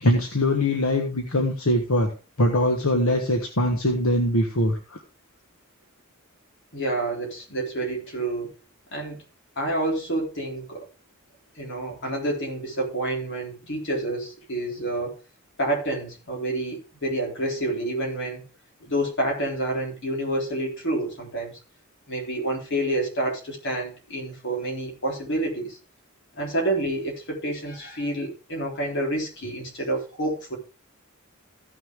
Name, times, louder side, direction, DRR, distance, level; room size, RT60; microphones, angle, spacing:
voice 1, 0.0-2.1 2.4-5.0, left 1 dB, 75° left, 1.4 m, -22 dB
voice 2, 6.7-8.5 8.9-9.2 9.6-10.9 11.6-15.2 15.6-18.4 18.9-21.6 22.1-25.8 26.4-30.6, right 1 dB, 60° left, 3.9 m, -28 dB
15.0 x 6.3 x 3.6 m
head